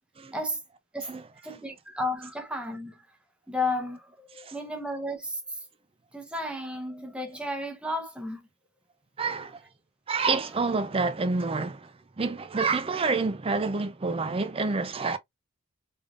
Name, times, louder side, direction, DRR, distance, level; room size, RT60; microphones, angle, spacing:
voice 1, 1.4-3.0 3.5-5.4 6.1-8.4, left 1 dB, 5° right, 0.8 m, -33 dB
voice 2, 9.2-9.6 10.1-15.2, right 4 dB, 25° right, 0.5 m, -28 dB
3.6 x 3.5 x 2.4 m
head